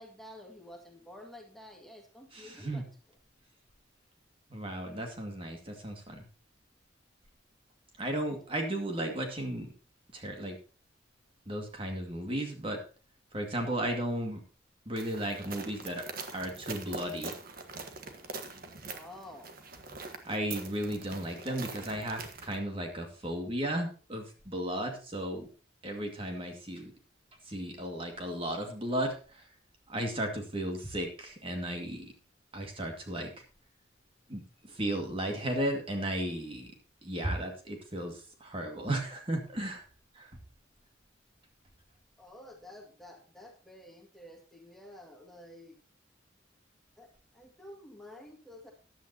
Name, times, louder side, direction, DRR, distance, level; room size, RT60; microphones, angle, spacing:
voice 1, 0.0-2.9 18.9-19.6 42.2-45.8 47.0-48.7, left 1 dB, ahead, 0 dB, 2.0 m, -50 dB
voice 2, 2.3-2.8 4.5-6.2 8.0-9.7 10.1-10.6 11.5-12.8 13.3-14.4 14.9-16.1 16.3-17.4 20.2-25.5 25.8-26.9 27.5-29.5 29.9-32.1 32.5-33.3 34.3-36.7 37.0-39.8 40.1-40.3, right 1 dB, 30° right, 3 dB, 2.2 m, -35 dB
sound 1, 15.0-22.6, right 4 dB, 50° right, 1.4 m, -43 dB
15.0 x 10.5 x 2.9 m, 0.37 s
head